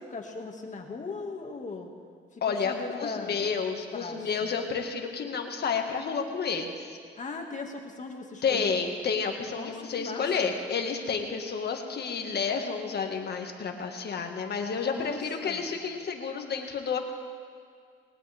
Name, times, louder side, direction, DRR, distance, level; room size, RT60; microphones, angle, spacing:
voice 1, 0.0-1.9 2.3-3.4 3.7-4.5 7.2-8.8 9.6-10.5 14.8-15.7, left 4 dB, 40° left, 2 dB, 2.2 m, -39 dB
voice 2, 2.4-7.0 8.4-17.0, left 5 dB, 55° left, 4 dB, 1.9 m, -30 dB
20.0 x 18.5 x 3.6 m, 2.1 s
cardioid pair, 90°, 20 cm